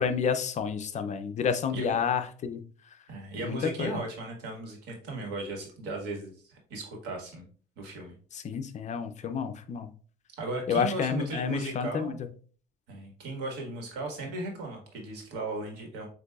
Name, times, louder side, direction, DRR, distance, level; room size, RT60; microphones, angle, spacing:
voice 1, 0.0-2.6 3.4-4.0 8.3-9.9 10.7-12.2, left 6 dB, 45° left, 9 dB, 0.6 m, -30 dB
voice 2, 3.1-7.4 7.8-8.1 10.4-12.2 12.9-16.1, right 2 dB, 85° right, 1 dB, 1.6 m, -36 dB
7.8 x 2.7 x 2.3 m, 0.43 s
cardioid pair, 110°, 17 cm